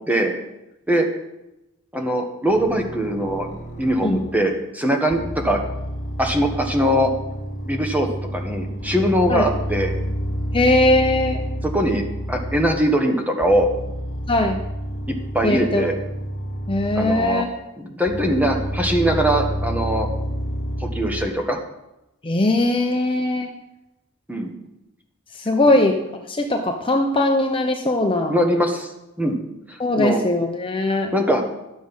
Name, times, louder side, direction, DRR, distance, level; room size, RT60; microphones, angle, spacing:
voice 1, 1.9-3.5 3.8-5.6 6.2-7.1 7.7-8.1 8.3-9.9 11.7-13.7 15.3-15.9 17.0-17.4 17.8-20.1 20.8-21.6 24.3-24.5 25.7-25.8 28.3-28.9 29.2-29.4 29.7-30.2 31.1-31.4, equal, 10° right, 3 dB, 1.4 m, -21 dB
sound 1, 2.5-4.5 5.1-13.0 13.4-17.5 18.1-21.3, equal, 40° left, 1.6 m, -29 dB
voice 2, 10.5-11.4 14.3-14.6 15.4-15.8 16.7-17.5 22.2-23.5 25.3-26.0 26.3-28.4 29.8-31.1, left 1 dB, 25° left, 3 dB, 0.8 m, -20 dB
12.5 x 7.6 x 5.5 m, 0.93 s
head